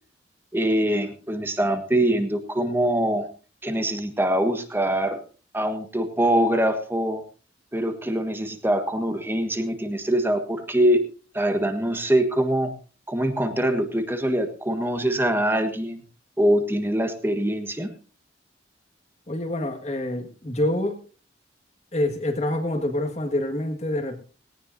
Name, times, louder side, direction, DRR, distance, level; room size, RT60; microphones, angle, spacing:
voice 1, 0.5-3.3 3.6-5.2 5.5-7.2 7.7-11.0 11.3-12.7 13.1-16.0 16.4-17.9, right 1 dB, 10° right, 7 dB, 1.5 m, -23 dB
voice 2, 19.3-21.0 21.9-24.2, left 1 dB, 35° left, 5 dB, 1.9 m, -26 dB
18.5 x 18.0 x 2.7 m, 0.36 s
head